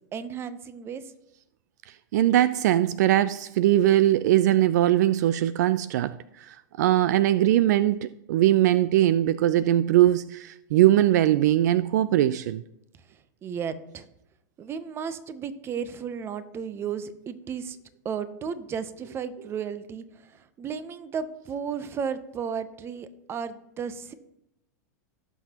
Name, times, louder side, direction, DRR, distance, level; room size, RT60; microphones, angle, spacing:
voice 1, 0.1-1.0 13.4-14.1 14.6-17.8 18.0-24.1, right 7 dB, 25° right, 0.7 m, -34 dB
voice 2, 2.1-12.6, right 13 dB, 65° right, 0.4 m, -21 dB
17.0 x 6.1 x 2.9 m
hypercardioid pair, 120°, 10 cm